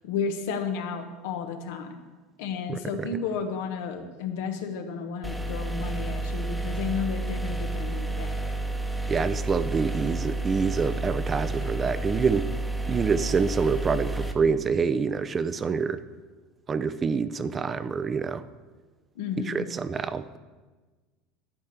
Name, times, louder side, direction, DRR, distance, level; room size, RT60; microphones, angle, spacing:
voice 1, 0.0-2.0 2.4-8.4 19.2-19.7, left 6 dB, 75° left, 6 dB, 1.2 m, -32 dB
voice 2, 2.7-3.1 9.1-12.5 12.9-16.0 16.7-18.4 19.4-20.4, right 5 dB, 25° right, 13 dB, 0.5 m, -26 dB
sound 1, 5.2-14.3, right 2 dB, ahead, 1.0 m, -30 dB
11.5 x 4.4 x 8.0 m, 1.3 s
supercardioid pair, 110°, 0 cm